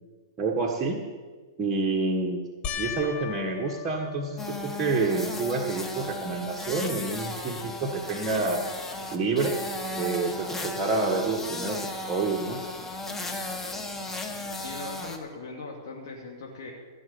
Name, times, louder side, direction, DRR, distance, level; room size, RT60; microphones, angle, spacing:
voice 1, 0.4-1.0 1.6-2.4 2.8-8.6 9.1-9.6 9.9-12.6, right 3 dB, 25° right, -1 dB, 1.6 m, -28 dB
sound 1, 2.6-5.2 5.8-6.4 6.8-6.9 10.1-10.2, left 7 dB, 40° left, 1.3 m, -38 dB
sound 2, 4.4-15.2, left 2 dB, 10° left, 1.5 m, -35 dB
voice 2, 14.6-16.7, left 3 dB, 65° left, -1 dB, 2.6 m, -40 dB
15.5 x 6.4 x 8.6 m, 1.4 s
hypercardioid pair, 115°, 2 cm